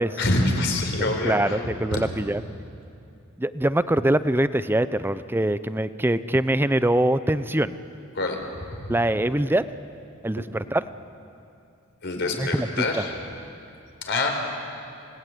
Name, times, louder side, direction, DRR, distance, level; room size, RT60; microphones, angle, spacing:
voice 1, 0.2-1.6 1.9-2.0 8.1-8.9 12.0-13.1 14.1-14.3, left 2 dB, 55° left, 3 dB, 4.4 m, -26 dB
voice 2, 1.2-2.4 3.4-7.8 8.9-9.7 10.2-10.8 12.4-13.0, right 1 dB, 10° right, 13 dB, 0.7 m, -23 dB
28.0 x 19.5 x 9.4 m, 2.5 s
head